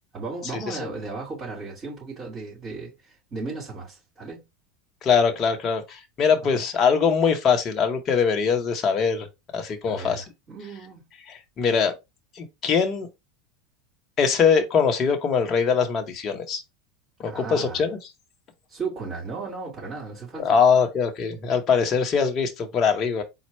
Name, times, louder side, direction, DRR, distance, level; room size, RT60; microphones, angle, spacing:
voice 1, 0.1-4.4 6.5-6.6 9.9-11.0 17.2-17.8 18.7-20.6, right 4 dB, 30° right, 2.9 m, -35 dB
voice 2, 5.0-9.3 9.5-10.2 11.3-11.9 12.4-13.1 14.2-16.6 17.2-18.0 20.3-23.2, left 6 dB, 40° left, 1.0 m, -22 dB
4.3 x 2.4 x 4.3 m
hypercardioid pair, 85°, 0 cm